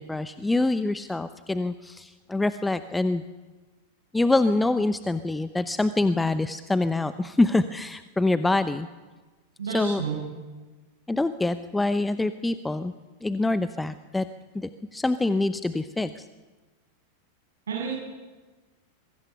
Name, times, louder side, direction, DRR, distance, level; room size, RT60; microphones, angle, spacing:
voice 1, 0.0-3.2 4.1-8.9 9.7-10.0 11.1-12.9 13.2-14.3 14.5-16.3, left 2 dB, 5° left, 12 dB, 0.8 m, -25 dB
voice 2, 9.6-10.2 17.7-18.0, right 6 dB, 70° right, -3 dB, 7.3 m, -30 dB
25.5 x 23.0 x 6.0 m, 1.3 s
figure-of-eight pair, 90°, 0 cm